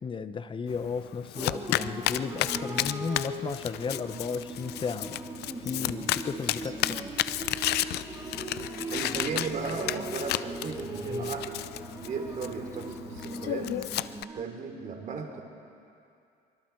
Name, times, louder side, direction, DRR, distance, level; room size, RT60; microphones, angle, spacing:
voice 1, 0.0-5.2 5.6-7.0 11.1-11.3, left 5 dB, 30° left, 12 dB, 0.9 m, -34 dB
Domestic sounds home sounds, 0.7-14.2, left 14 dB, 75° left, 0.5 m, -33 dB
sound 1, 1.3-14.4, right 3 dB, 20° right, 1.2 m, -39 dB
voice 2, 8.6-11.6 11.9-13.7 14.3-15.4, right 5 dB, 50° right, 4 dB, 3.1 m, -36 dB
25.5 x 23.5 x 4.6 m, 2.5 s
cardioid pair, 110°, 17 cm